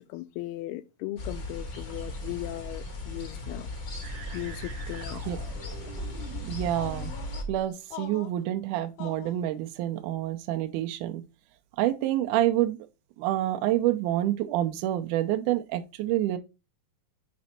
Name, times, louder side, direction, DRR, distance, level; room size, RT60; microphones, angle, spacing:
voice 1, 0.0-3.7 4.3-5.3, left 16 dB, 85° left, 2.5 m, -37 dB
sound 1, 1.2-7.4, left 2 dB, 50° left, 1.3 m, -38 dB
sound 2, 4.0-7.6, right 3 dB, 45° right, 1.3 m, -40 dB
voice 2, 6.5-7.1 7.5-11.2 11.8-12.8 13.2-16.4, right 13 dB, 85° right, 1.8 m, -27 dB
sound 3, 6.7-7.4 7.9-8.4 9.0-9.4, left 9 dB, 70° left, 2.9 m, -43 dB
6.1 x 5.2 x 4.3 m
omnidirectional pair, 4.5 m